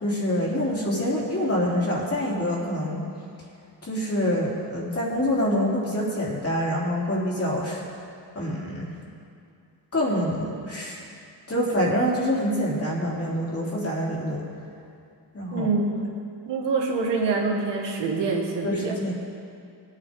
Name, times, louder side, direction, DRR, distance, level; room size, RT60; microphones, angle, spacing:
voice 1, 0.0-3.0 3.8-7.8 8.3-8.9 9.9-11.0 11.5-14.4 15.3-15.7 18.6-19.1, equal, 35° left, -5 dB, 3.3 m, -26 dB
voice 2, 15.5-15.9 16.5-19.0, right 4 dB, 90° right, 0 dB, 2.0 m, -25 dB
19.5 x 9.1 x 3.7 m, 2.4 s
cardioid pair, 105°, 41 cm